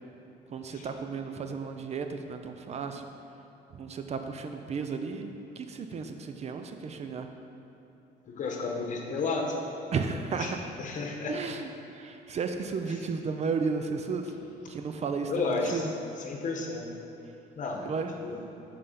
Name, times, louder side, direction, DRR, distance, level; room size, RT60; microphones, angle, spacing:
voice 1, 0.5-3.1 3.7-7.3 9.9-10.6 11.3-14.3 14.7-15.9 17.8-18.1, right 5 dB, 40° right, 6 dB, 0.5 m, -34 dB
voice 2, 8.3-9.6 10.4-10.5 10.8-11.4 15.3-15.8 16.2-16.9 17.5-17.9 18.2-18.4, left 4 dB, 50° left, 1 dB, 1.2 m, -32 dB
7.7 x 4.9 x 5.8 m, 3.0 s
cardioid pair, 110°, 17 cm